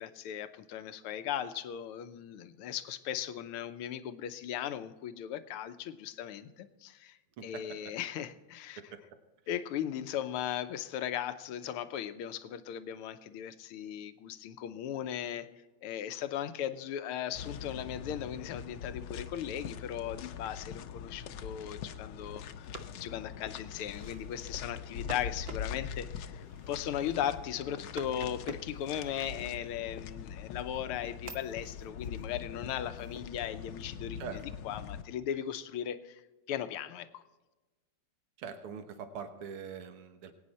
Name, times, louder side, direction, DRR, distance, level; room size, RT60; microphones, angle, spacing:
voice 1, 0.0-8.8 9.5-15.5 15.8-36.2 36.5-37.2, left 10 dB, 85° left, 11 dB, 1.7 m, -37 dB
sound 1, 17.3-35.0, left 7 dB, 70° left, 1.2 m, -43 dB
sound 2, 22.5-30.1 30.6-33.3, right 3 dB, 45° right, 0.8 m, -50 dB
voice 2, 38.4-40.3, right 6 dB, 80° right, 8 dB, 2.1 m, -43 dB
22.0 x 9.2 x 4.2 m, 1.2 s
omnidirectional pair, 2.4 m